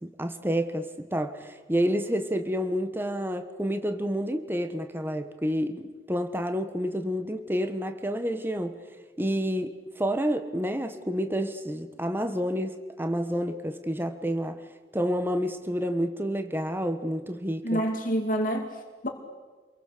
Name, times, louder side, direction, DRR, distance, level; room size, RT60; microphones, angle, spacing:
voice 1, 0.0-8.7 9.2-14.5 14.9-17.8, equal, 10° right, 8 dB, 1.3 m, -29 dB
voice 2, 17.6-19.1, equal, 50° left, 3 dB, 2.7 m, -28 dB
28.0 x 22.5 x 6.8 m, 1.4 s
head